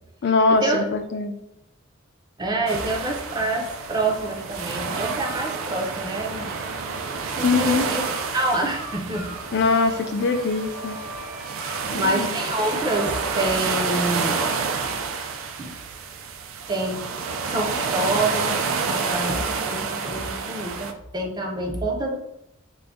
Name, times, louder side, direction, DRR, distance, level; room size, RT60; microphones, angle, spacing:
voice 1, 0.2-1.3 7.4-7.8 9.5-11.0 11.9-12.4, left 4 dB, 55° left, 6 dB, 0.4 m, -22 dB
voice 2, 2.4-6.5 7.4-8.0 8.3-9.3 12.0-14.4 15.6-15.7 16.7-17.0 17.5-18.6 18.9-22.2, right 2 dB, 20° right, 2 dB, 0.5 m, -27 dB
sound 1, 2.7-20.9, right 5 dB, 80° right, 0.4 m, -29 dB
sound 2, 3.6-15.0, right 1 dB, 60° right, 1.2 m, -41 dB
3.9 x 2.1 x 3.4 m, 0.82 s
head